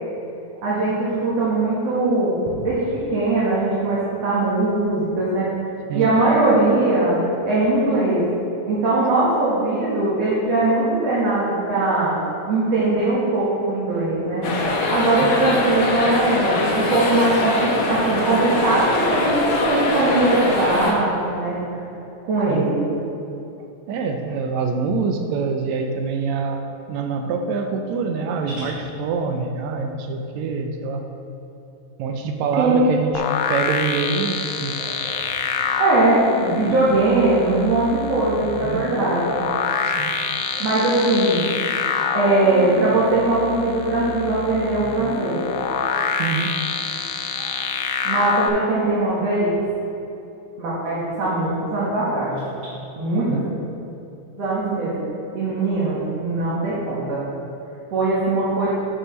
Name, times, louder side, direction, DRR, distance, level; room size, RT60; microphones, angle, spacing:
voice 1, 0.6-5.5 5.9-8.2 8.7-14.4 14.9-21.6 22.2-22.9 32.5-32.7 34.8-35.2 35.8-39.4 40.5-41.7 42.1-45.4 47.3-47.5 48.0-49.5 50.6-52.3 53.0-53.4 54.4-54.9 55.3-57.2 57.9-58.7, right 2 dB, 60° right, -9 dB, 2.5 m, -20 dB
sound 1, 14.4-20.9, left 2 dB, 75° left, 1.1 m, -22 dB
voice 2, 23.9-31.1 32.0-33.2 33.5-34.8 38.6-38.8 39.8-40.1 46.2-46.5 53.3-53.4, right 5 dB, 80° right, 4 dB, 1.8 m, -25 dB
sound 2, 33.1-48.5, left 6 dB, 90° left, 2.1 m, -26 dB
10.5 x 6.2 x 3.1 m, 2.9 s
omnidirectional pair, 3.4 m